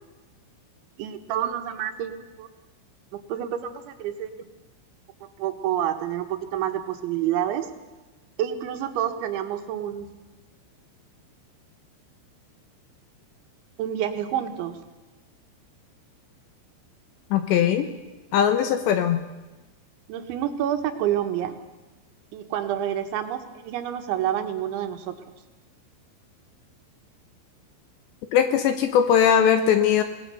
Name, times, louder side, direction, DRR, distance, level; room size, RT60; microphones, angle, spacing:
voice 1, 1.0-2.5 3.1-4.3 5.2-7.7 8.4-10.1 13.8-14.8 20.1-21.6 22.3-25.2, right 10 dB, 70° right, 7 dB, 3.5 m, -28 dB
voice 2, 17.3-17.9 18.3-19.2 28.3-30.0, left 8 dB, 75° left, 8 dB, 2.9 m, -20 dB
26.0 x 19.0 x 6.9 m, 1.2 s
omnidirectional pair, 5.9 m